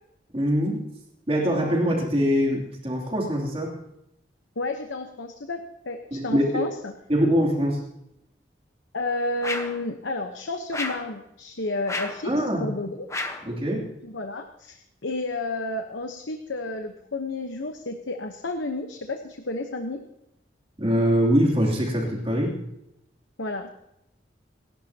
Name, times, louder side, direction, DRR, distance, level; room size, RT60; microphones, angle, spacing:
voice 1, 0.3-0.8 1.3-3.7 6.1-6.6 7.1-7.8 12.2-12.7 13.4-13.9 20.8-22.5, equal, 30° right, -3 dB, 3.0 m, -23 dB
voice 2, 4.6-6.9 8.9-13.1 14.0-20.0 23.4-23.7, left 2 dB, 90° left, 5 dB, 1.1 m, -31 dB
sound 1, 9.4-9.8 10.7-11.1 11.9-12.3 13.1-13.5, left 2 dB, 15° left, 1.1 m, -31 dB
29.0 x 11.5 x 2.9 m, 0.84 s
head